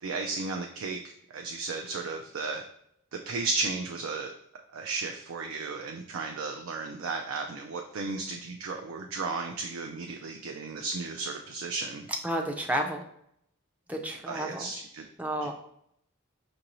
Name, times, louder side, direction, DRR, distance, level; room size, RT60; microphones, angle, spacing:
voice 1, 0.0-1.0 1.3-2.6 3.1-4.3 4.7-12.1 14.3-15.1 15.4-15.5, right 3 dB, 70° right, 3 dB, 0.4 m, -34 dB
voice 2, 12.2-13.0 13.9-14.7 15.2-15.5, right 1 dB, 5° right, 2 dB, 0.4 m, -31 dB
5.5 x 2.6 x 2.9 m, 0.73 s
head